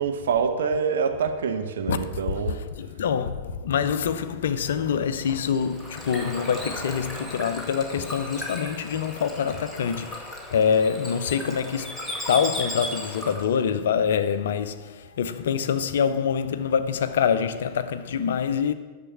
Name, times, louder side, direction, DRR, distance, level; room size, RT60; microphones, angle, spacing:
voice 1, 0.0-2.6, right 6 dB, 65° right, 0.9 m, -26 dB
voice 2, 1.9-18.7, left 7 dB, 60° left, 0.6 m, -25 dB
Bird / Water, 5.1-13.6, left 1 dB, 5° left, 2.1 m, -36 dB
10.0 x 6.8 x 6.8 m
figure-of-eight pair, 90°, 0 cm